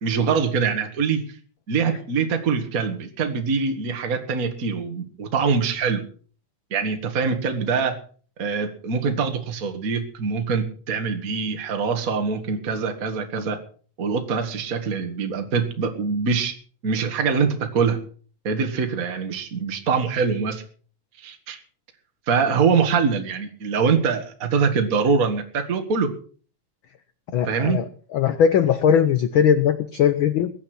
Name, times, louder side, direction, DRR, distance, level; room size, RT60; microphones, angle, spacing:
voice 1, 0.0-1.2 1.7-6.0 6.7-8.0 8.4-13.6 14.0-16.5 16.8-18.0 18.4-20.6 21.2-21.6 22.3-26.1 27.4-27.8, right 5 dB, 35° right, 5 dB, 1.9 m, -23 dB
voice 2, 27.3-27.8 28.1-30.5, left 8 dB, 75° left, 12 dB, 1.1 m, -19 dB
21.5 x 8.6 x 6.1 m, 0.43 s
omnidirectional pair, 3.3 m